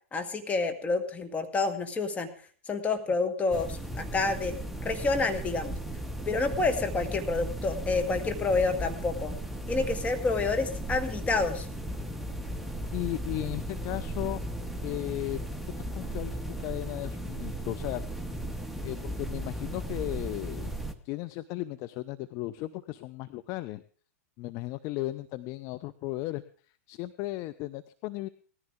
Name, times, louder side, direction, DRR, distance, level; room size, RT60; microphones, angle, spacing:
voice 1, 0.1-2.3 2.7-5.7 6.3-9.4 9.7-11.7, left 3 dB, 15° left, 7 dB, 1.8 m, -28 dB
sound 1, 3.5-20.9, right 1 dB, ahead, 1.1 m, -36 dB
voice 2, 12.9-14.4 14.8-15.4 15.8-18.0 18.8-20.7 21.0-23.8 24.4-26.4 26.9-28.3, left 17 dB, 40° left, 12 dB, 0.6 m, -35 dB
18.0 x 14.0 x 3.7 m, 0.42 s
figure-of-eight pair, 105°, 8 cm